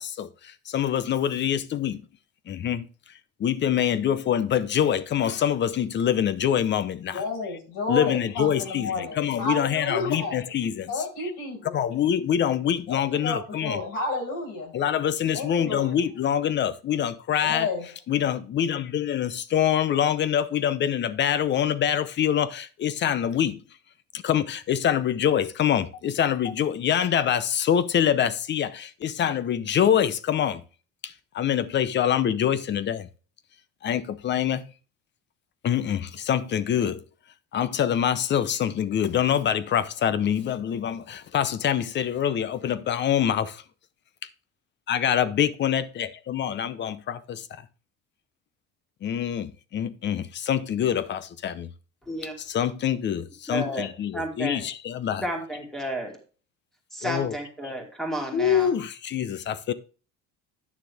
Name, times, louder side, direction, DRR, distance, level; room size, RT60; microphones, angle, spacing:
voice 1, 0.0-2.0 2.5-3.1 3.4-7.2 7.9-11.3 11.7-13.8 14.7-17.7 18.1-23.6 24.1-30.6 31.0-33.1 33.8-34.7 35.6-37.0 37.5-43.6 44.9-47.6 49.0-51.7 52.4-55.3 57.0-57.4 58.3-59.7, left 9 dB, 40° left, 0.8 m, -25 dB
voice 2, 7.1-10.4 10.9-11.8 12.9-13.0 13.2-14.7 15.3-16.0 17.4-17.9, left 3 dB, 80° left, 5.5 m, -31 dB
voice 3, 53.5-53.9 54.1-54.6 55.2-56.2 56.9-58.7, right 1 dB, ahead, 2.6 m, -31 dB
9.7 x 6.6 x 3.5 m
cardioid pair, 140°, 29 cm